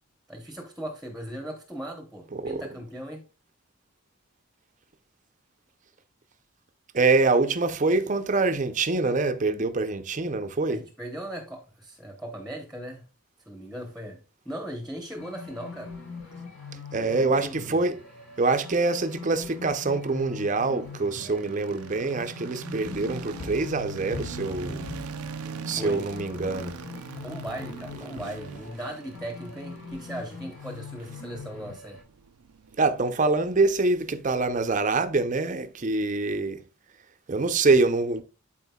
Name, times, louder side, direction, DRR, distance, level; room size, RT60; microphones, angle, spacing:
voice 1, 0.3-3.3 10.7-13.1 13.5-15.9 17.0-17.8 21.2-21.5 25.8-26.0 27.2-32.0, right 1 dB, ahead, 0.9 m, -38 dB
voice 2, 2.3-2.6 6.9-10.8 16.9-18.0 18.4-24.8 25.7-26.7 32.8-36.6 37.3-38.2, right 3 dB, 35° right, 0.5 m, -25 dB
sound 1, 15.2-32.0, left 4 dB, 75° left, 4.3 m, -43 dB
sound 2, 20.9-35.0, right 6 dB, 85° right, 0.5 m, -42 dB
sound 3, 22.8-28.8, left 3 dB, 30° left, 0.4 m, -44 dB
12.0 x 4.3 x 2.3 m
head